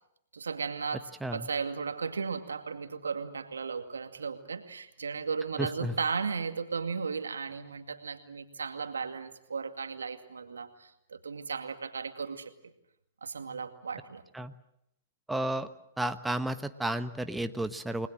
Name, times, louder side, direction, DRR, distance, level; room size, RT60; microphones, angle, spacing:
voice 1, 0.3-12.7 13.2-14.2, right 5 dB, 85° right, 8 dB, 2.2 m, -35 dB
voice 2, 5.6-5.9 14.3-14.5 15.3-15.7 16.0-18.1, right 1 dB, 5° right, 9 dB, 1.3 m, -32 dB
30.0 x 20.5 x 7.6 m, 0.77 s
hypercardioid pair, 115°, 0 cm